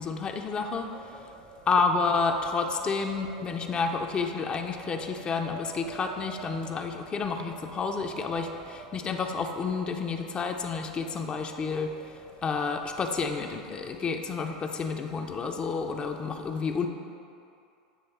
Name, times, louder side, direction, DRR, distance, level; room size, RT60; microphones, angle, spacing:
voice 1, 0.0-1.3 1.7-16.9, left 4 dB, 30° left, 5 dB, 0.5 m, -30 dB
Wind, 0.7-13.2, right 4 dB, 55° right, 0.9 m, -50 dB
8.6 x 3.1 x 4.2 m, 2.6 s
hypercardioid pair, 100°, 3 cm